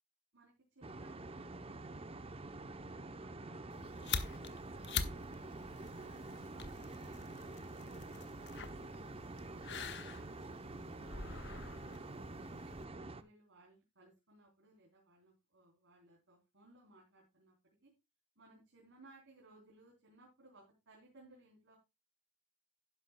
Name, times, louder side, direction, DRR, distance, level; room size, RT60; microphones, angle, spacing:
voice 1, 0.3-5.5 5.9-7.7 8.1-12.4 13.0-17.6 17.8-17.9 18.4-21.8, right 2 dB, 55° right, -1 dB, 3.6 m, -64 dB
sound 1, 0.8-13.2, right 2 dB, 25° right, 0.7 m, -47 dB
sound 2, 3.7-12.9, left 6 dB, 50° left, 1.1 m, -45 dB
12.0 x 10.5 x 2.2 m, 0.24 s
head